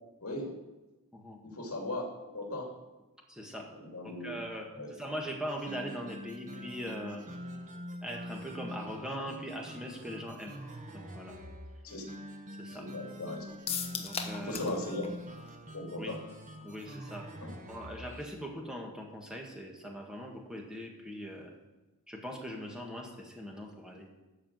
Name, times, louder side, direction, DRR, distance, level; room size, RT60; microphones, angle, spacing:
voice 1, 0.2-0.5 1.4-2.0 2.3-2.7 3.8-4.3 4.7-4.9 11.8-12.0 12.7-13.6 14.4-15.1 15.7-16.2 16.6-16.7 17.4-17.5, left 2 dB, 70° left, 0 dB, 2.6 m, -38 dB
voice 2, 3.3-3.7 4.0-7.2 8.0-10.6 10.9-11.4 12.6-12.9 13.9-14.8 16.0-16.2 16.6-17.3 17.7-21.5 22.1-24.1, equal, 5° right, 0 dB, 1.6 m, -41 dB
sound 1, 5.5-18.3, equal, 35° right, 1.2 m, -45 dB
sound 2, 13.7-14.8 15.0-15.1 15.5-15.6, left 7 dB, 25° left, 1.0 m, -36 dB
12.5 x 4.9 x 7.5 m, 1.1 s
head